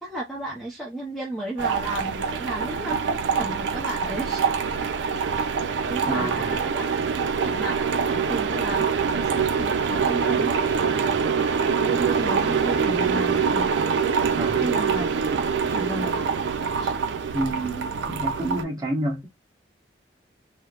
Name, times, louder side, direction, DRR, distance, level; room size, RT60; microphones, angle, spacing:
voice 1, 0.0-4.7 5.9-6.8 7.4-15.1 15.6-16.2 16.8-16.9, right 1 dB, ahead, 0.6 m, -34 dB
sound 1, 1.6-18.6, right 6 dB, 90° right, 0.4 m, -24 dB
voice 2, 6.1-6.5 14.3-14.6 17.3-19.3, right 1 dB, 20° right, 1.1 m, -29 dB
3.4 x 2.0 x 2.4 m
head